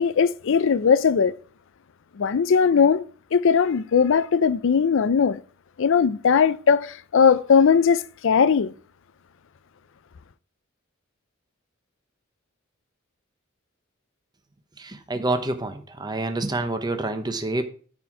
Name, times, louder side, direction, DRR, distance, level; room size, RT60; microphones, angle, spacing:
voice 1, 0.0-1.4 2.2-3.0 3.3-5.4 5.8-8.7, left 6 dB, 65° left, 0.5 m, -19 dB
voice 2, 14.8-17.6, right 2 dB, 20° right, 0.9 m, -27 dB
12.5 x 4.5 x 4.7 m
head